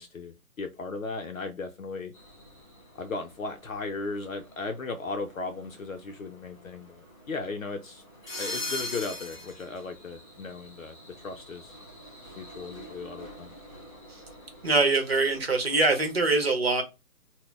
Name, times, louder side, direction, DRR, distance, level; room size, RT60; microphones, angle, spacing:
voice 1, 0.0-2.1 2.9-8.0 8.4-11.8 12.4-13.6, left 3 dB, 65° left, 0.6 m, -36 dB
sound 1, 2.1-16.1, left 1 dB, 25° left, 1.3 m, -44 dB
voice 2, 14.6-16.8, right 3 dB, 45° right, 0.9 m, -23 dB
4.0 x 2.1 x 3.3 m
hypercardioid pair, 175°, 44 cm